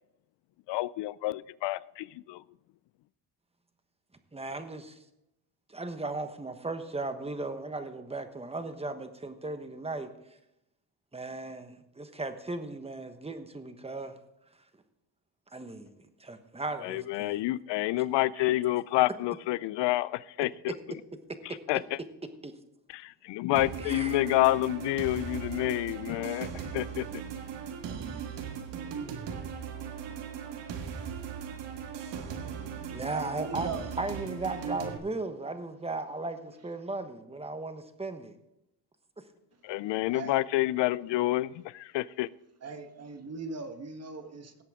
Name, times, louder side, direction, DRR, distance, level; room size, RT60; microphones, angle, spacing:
voice 1, 0.7-2.4 16.8-20.7 21.4-22.0 22.9-27.1 39.6-42.3, left 17 dB, 80° left, 0.5 m, -29 dB
voice 2, 4.3-5.0 5.7-10.1 11.1-14.1 15.5-15.9 16.2-17.4 18.4-18.5 22.4-22.5 23.8-24.2 32.9-33.7 34.0-38.4, right 2 dB, 15° right, 1.2 m, -36 dB
sound 1, 23.6-35.0, right 7 dB, 85° right, 1.6 m, -38 dB
voice 3, 32.9-33.9 34.4-34.6 39.5-40.4 42.6-44.6, right 4 dB, 35° right, 1.5 m, -41 dB
17.5 x 7.8 x 3.6 m
cardioid pair, 105°, 42 cm